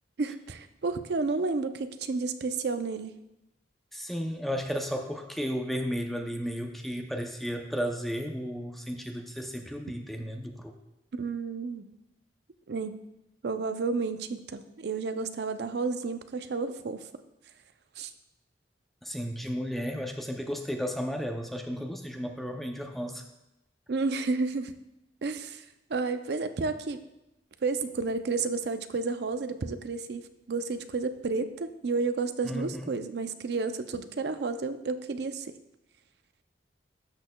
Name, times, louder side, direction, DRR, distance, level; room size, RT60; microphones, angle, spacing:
voice 1, 0.2-3.1 11.2-11.9 12.7-13.0 13.4-17.0 18.0-18.1 23.9-24.7 25.2-25.6 25.9-27.0 27.6-35.5, right 4 dB, 65° right, 10 dB, 0.5 m, -31 dB
voice 2, 3.9-10.7 19.0-23.2 32.4-32.9, equal, ahead, 4 dB, 0.5 m, -34 dB
12.0 x 6.4 x 2.2 m, 0.89 s
head